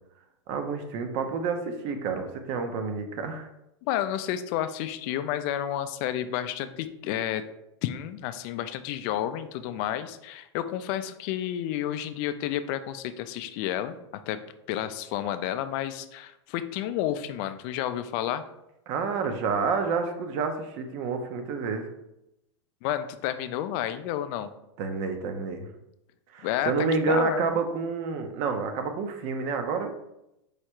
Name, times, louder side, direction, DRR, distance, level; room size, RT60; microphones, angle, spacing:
voice 1, 0.5-3.5 18.9-21.9 24.8-25.7 26.3-29.9, right 5 dB, 40° right, 6 dB, 0.6 m, -29 dB
voice 2, 3.8-7.4 7.8-14.4 14.7-18.4 22.8-24.5 26.4-27.6, left 11 dB, 40° left, 11 dB, 0.3 m, -31 dB
4.8 x 2.1 x 4.4 m, 0.86 s
hypercardioid pair, 135°, 16 cm